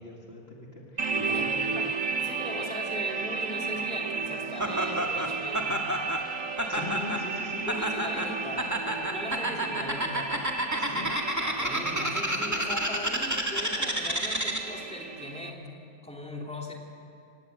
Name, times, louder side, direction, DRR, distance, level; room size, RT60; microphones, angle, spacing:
voice 1, 0.0-1.8 6.7-7.7 10.8-11.1, left 2 dB, 40° left, -2 dB, 2.2 m, -40 dB
sound 1, 1.0-15.5, right 5 dB, 60° right, 1.5 m, -34 dB
voice 2, 1.3-1.9 2.2-5.7 7.7-10.3 11.4-16.7, left 1 dB, 5° left, -1 dB, 2.8 m, -39 dB
Laughter, 4.6-14.8, right 1 dB, 10° right, 1.9 m, -30 dB
25.5 x 18.5 x 8.1 m, 2.5 s
omnidirectional pair, 1.6 m